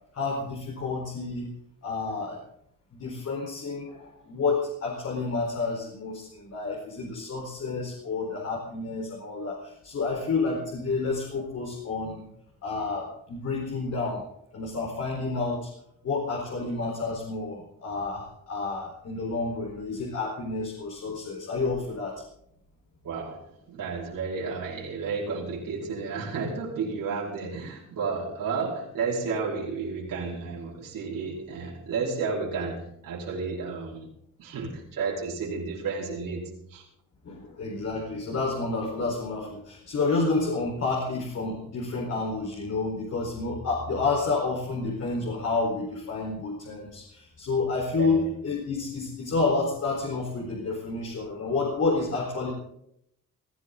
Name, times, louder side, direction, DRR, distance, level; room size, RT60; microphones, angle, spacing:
voice 1, 0.1-1.5 1.8-2.4 2.9-12.3 12.6-14.2 14.5-15.7 16.0-22.2 37.2-52.5, left 3 dB, 50° left, -1 dB, 4.5 m, -29 dB
voice 2, 23.0-23.4 23.7-34.1 34.4-36.4 36.7-36.8 48.0-48.3, right 4 dB, 75° right, -5 dB, 5.3 m, -32 dB
19.5 x 16.5 x 4.0 m, 0.73 s
cardioid pair, 155°, 33 cm